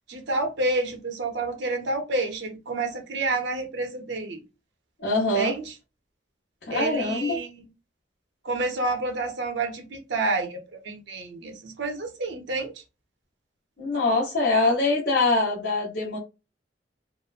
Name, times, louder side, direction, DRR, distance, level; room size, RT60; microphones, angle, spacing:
voice 1, 0.0-4.4 5.3-5.7 6.7-7.7 8.4-12.7, right 2 dB, 70° right, 0.8 m, -29 dB
voice 2, 5.0-5.5 6.7-7.4 13.8-16.2, left 2 dB, 65° left, 0.9 m, -23 dB
2.9 x 2.1 x 2.4 m
head